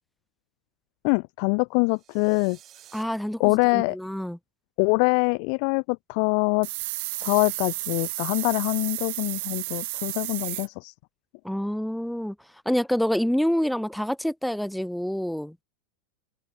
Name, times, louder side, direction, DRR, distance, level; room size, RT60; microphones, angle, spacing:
voice 1, 1.0-2.6 3.4-4.0 4.8-6.7 7.2-10.9, left 40 dB or more, 60° left, 0.5 m, -24 dB
sound 1, 1.8-3.0, right 12 dB, 40° right, 7.4 m, -52 dB
voice 2, 2.9-4.4 11.4-12.4 12.7-15.6, equal, ahead, 0.5 m, -27 dB
sound 2, 6.6-10.7, right 23 dB, 70° right, 1.0 m, -32 dB
hypercardioid pair, 105°, 0 cm